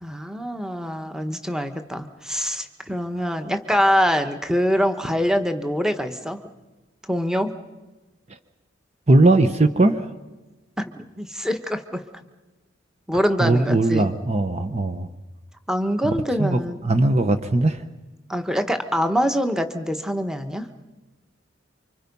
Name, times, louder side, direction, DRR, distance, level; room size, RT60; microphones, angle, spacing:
voice 1, 0.0-6.4 7.1-7.5 10.8-12.0 13.1-14.1 15.7-16.9 18.3-20.7, equal, 5° right, 7 dB, 1.4 m, -24 dB
voice 2, 9.1-10.1 13.4-15.1 16.0-16.1 16.4-17.8, right 2 dB, 35° right, 9 dB, 1.0 m, -19 dB
28.5 x 25.5 x 5.5 m, 1.2 s
head